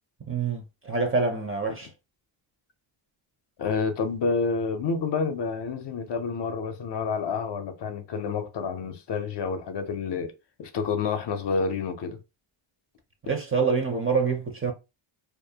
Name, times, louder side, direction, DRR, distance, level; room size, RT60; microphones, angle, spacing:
voice 1, 0.3-1.9 13.2-14.7, right 4 dB, 25° right, 0.5 m, -26 dB
voice 2, 3.6-10.3 10.6-12.2, left 5 dB, 55° left, 0.5 m, -29 dB
2.5 x 2.1 x 2.7 m
wide cardioid pair, 115°, 50 cm